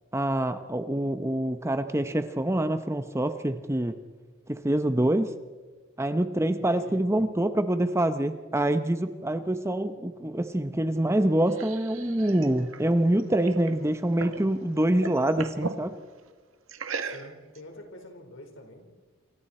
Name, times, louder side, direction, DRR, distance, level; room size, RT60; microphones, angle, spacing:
voice 1, 0.1-4.0 4.5-5.3 6.0-15.9, right 1 dB, 15° right, 9 dB, 0.8 m, -26 dB
voice 2, 6.6-7.0 17.0-18.9, left 1 dB, 65° left, 4 dB, 4.3 m, -46 dB
sound 1, 11.1-14.5 14.8-15.8 16.7-17.6, right 4 dB, 85° right, 1.6 m, -37 dB
28.0 x 24.5 x 4.3 m, 1.4 s
head